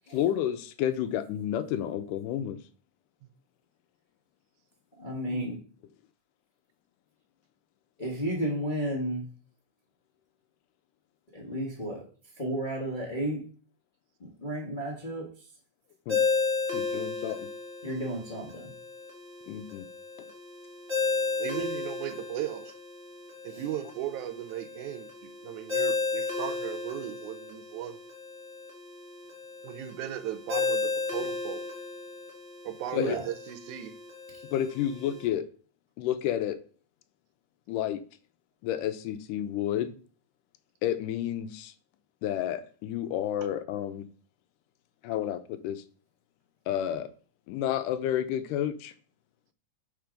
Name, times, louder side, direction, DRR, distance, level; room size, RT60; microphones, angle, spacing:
voice 1, 0.1-2.6 5.3-5.5 16.1-16.2 16.7-17.5 19.5-19.8 32.9-33.2 34.5-35.5 36.0-36.6 37.7-38.0 38.6-39.9 40.8-41.7 42.2-44.1 45.0-45.8 46.7-47.1 47.5-48.9, left 11 dB, 85° left, 2.2 m, -30 dB
voice 2, 5.0-5.6 8.0-9.3 11.3-12.0 12.4-13.4 14.2-15.3 17.8-18.7 23.5-23.6 32.9-33.2, right 1 dB, 40° left, 0.6 m, -32 dB
Ringtone, 16.1-35.2, left 4 dB, 40° right, 0.7 m, -34 dB
voice 3, 21.4-22.7 23.4-25.1 25.4-28.0 29.6-31.6 32.6-34.0, right 11 dB, 80° right, 2.0 m, -36 dB
5.9 x 4.5 x 5.1 m
omnidirectional pair, 3.7 m